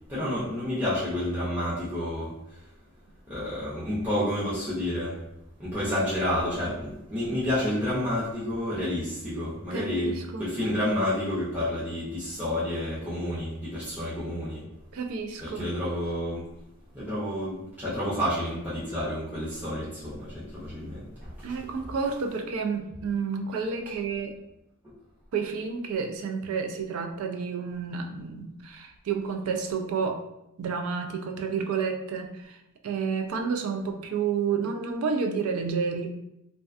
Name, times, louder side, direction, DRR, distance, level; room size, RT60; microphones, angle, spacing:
voice 1, 0.1-2.3 3.3-5.2 5.6-14.6 15.4-16.4 16.9-21.6, left 1 dB, 5° right, -11 dB, 0.6 m, -30 dB
voice 2, 9.7-10.5 14.9-15.7 21.4-24.3 25.3-30.2 30.6-32.6 32.8-36.1, right 5 dB, 75° right, 5 dB, 0.4 m, -30 dB
2.4 x 2.2 x 2.4 m, 0.86 s
head